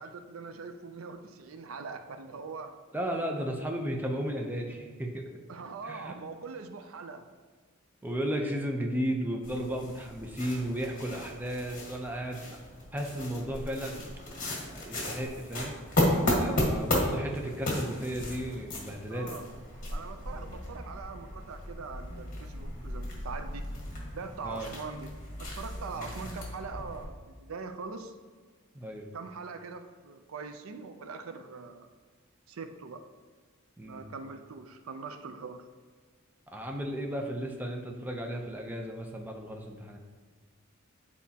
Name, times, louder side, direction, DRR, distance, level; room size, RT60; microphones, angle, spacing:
voice 1, 0.0-2.7 5.5-7.3 19.1-19.5 19.9-23.6 24.1-28.2 29.1-31.9 32.5-33.0 33.8-35.6, right 4 dB, 85° right, 8 dB, 0.5 m, -42 dB
voice 2, 2.9-5.2 5.8-6.2 8.0-12.5 12.9-14.0 14.7-15.7 16.1-19.4 24.4-24.7 25.9-26.2 28.7-29.1 33.8-34.1 36.5-40.0, equal, 10° right, 1 dB, 0.6 m, -34 dB
sound 1, 9.4-27.1, left 1 dB, 40° left, 1.4 m, -34 dB
9.3 x 4.2 x 2.8 m, 1.5 s
head